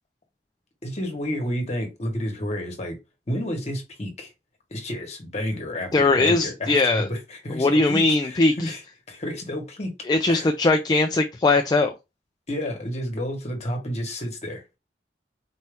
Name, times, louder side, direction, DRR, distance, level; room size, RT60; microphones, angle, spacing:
voice 1, 0.8-3.0 3.3-4.3 4.7-8.8 9.1-9.9 10.3-10.5 12.5-14.6, equal, 40° left, 1.3 m, -30 dB
voice 2, 5.9-7.1 7.6-8.7 10.1-11.9, left 3 dB, 25° left, 0.3 m, -20 dB
4.2 x 2.7 x 3.4 m
head